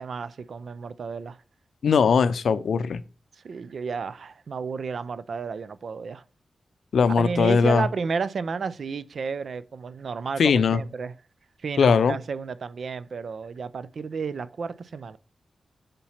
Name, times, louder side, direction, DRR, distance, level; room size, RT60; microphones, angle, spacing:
voice 1, 0.0-1.4 3.4-6.2 7.2-11.1 11.6-15.2, right 5 dB, 75° right, 0.4 m, -32 dB
voice 2, 1.8-3.0 6.9-7.9 10.4-10.8 11.8-12.2, left 6 dB, 85° left, 0.4 m, -20 dB
5.2 x 4.3 x 5.6 m
cardioid pair, 50°, 0 cm